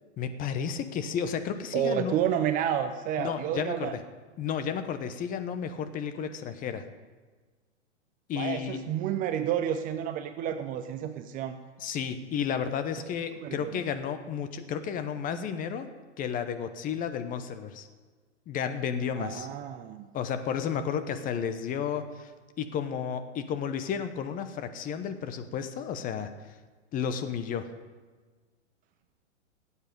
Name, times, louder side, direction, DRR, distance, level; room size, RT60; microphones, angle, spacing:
voice 1, 0.2-2.2 3.2-4.0 4.4-6.8 8.3-8.8 11.8-15.9 16.2-17.9 18.5-19.5 20.1-22.3 22.6-26.3 26.9-27.7, left 7 dB, 25° left, 9 dB, 0.9 m, -32 dB
voice 2, 1.7-4.0 8.4-11.6 13.4-13.8 19.2-20.1, right 9 dB, 25° right, 9 dB, 0.6 m, -30 dB
17.0 x 8.3 x 5.3 m, 1.4 s
hypercardioid pair, 120°, 36 cm